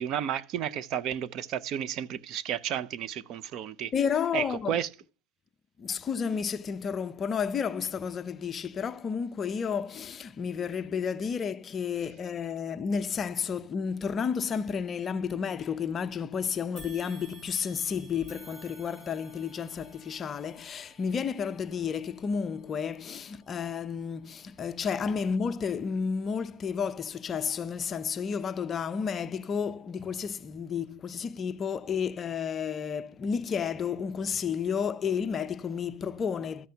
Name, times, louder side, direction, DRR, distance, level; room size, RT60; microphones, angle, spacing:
voice 1, 0.0-3.9 4.3-4.9, right 10 dB, 45° right, 0.6 m, -32 dB
voice 2, 3.9-4.8 5.8-36.7, left 6 dB, 25° left, 0.6 m, -31 dB
sound 1, 16.8-26.1 26.6-26.7 27.7-27.8, right 2 dB, 20° right, 5.1 m, -55 dB
13.5 x 9.1 x 2.9 m
supercardioid pair, 140°, 0 cm